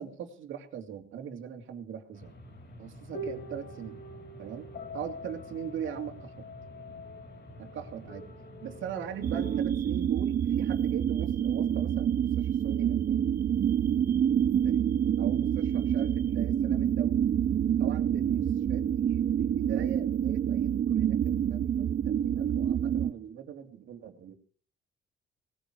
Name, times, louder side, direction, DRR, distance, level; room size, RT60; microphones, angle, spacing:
voice 1, 0.0-2.4 2.8-4.0 4.4-6.5 7.6-8.2 8.6-13.2 14.6-14.8 15.2-17.2 17.8-24.3, right 9 dB, 80° right, 6 dB, 2.8 m, -40 dB
sound 1, 2.1-9.6, left 1 dB, 60° left, 5.1 m, -44 dB
sound 2, 9.2-23.1, right 9 dB, 50° right, 0.6 m, -27 dB
19.0 x 10.0 x 6.4 m, 0.44 s
cardioid pair, 90°, 20 cm